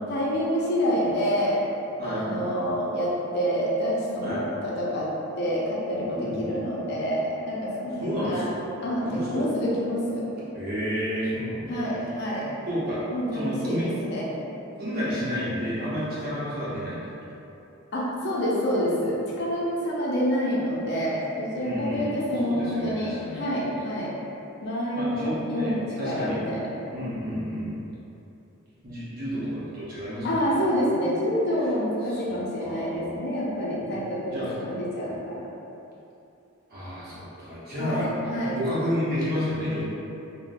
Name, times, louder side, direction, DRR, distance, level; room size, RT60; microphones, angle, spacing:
voice 1, 0.0-1.6 2.0-5.1 5.4-8.4 8.8-10.3 11.7-12.5 13.1-14.3 17.9-24.1 24.6-26.7 30.2-35.4 37.8-38.6, equal, 50° left, -6 dB, 0.5 m, -27 dB
voice 2, 8.0-8.6 9.0-9.4 10.5-11.8 12.7-13.0 13.3-13.9 14.8-17.0 21.6-22.1 22.4-23.4 25.0-26.4 26.9-27.7 28.8-30.6 32.1-33.2 33.8-34.0 34.3-34.5 36.7-39.8, equal, 45° right, -9 dB, 0.8 m, -31 dB
3.6 x 2.1 x 2.5 m, 2.8 s
head